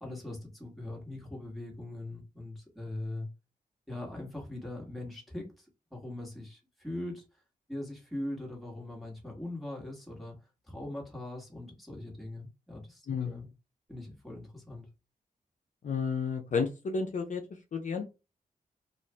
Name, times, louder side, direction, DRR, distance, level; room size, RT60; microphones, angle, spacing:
voice 1, 0.0-3.3 3.9-7.3 7.7-13.5 13.9-14.9, left 1 dB, ahead, 1.4 m, -41 dB
voice 2, 13.1-13.5 15.8-18.0, left 5 dB, 55° left, 0.5 m, -32 dB
2.5 x 2.4 x 3.3 m
cardioid pair, 85°, 15 cm